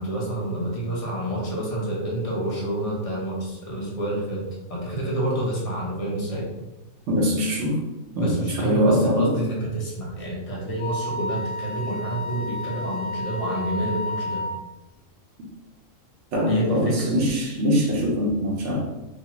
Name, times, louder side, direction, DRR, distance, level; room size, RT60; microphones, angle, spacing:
voice 1, 0.0-4.4 4.7-6.4 8.2-14.4 16.5-17.1, right 1 dB, 40° left, -4 dB, 0.5 m, -28 dB
voice 2, 7.1-7.8 8.1-9.3 16.3-18.8, equal, 65° right, -2 dB, 0.9 m, -22 dB
Wind instrument woodwind instrument, 10.8-14.6, left 1 dB, 75° left, 1.0 m, -31 dB
2.7 x 2.3 x 2.9 m, 1.0 s
omnidirectional pair, 1.4 m